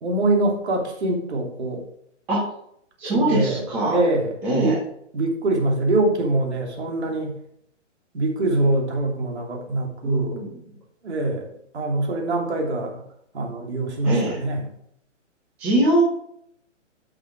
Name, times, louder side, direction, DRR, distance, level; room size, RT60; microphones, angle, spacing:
voice 1, 0.0-1.8 3.0-3.6 3.9-4.8 5.1-7.4 8.1-10.4 11.0-11.5 11.7-13.0 13.3-14.6, right 2 dB, 60° right, 1 dB, 3.0 m, -24 dB
voice 2, 3.0-4.0 4.4-4.8 10.0-10.6 14.0-14.4 15.6-16.0, right 1 dB, 5° right, -8 dB, 1.0 m, -22 dB
13.0 x 6.2 x 3.9 m, 0.70 s
hypercardioid pair, 175°, 38 cm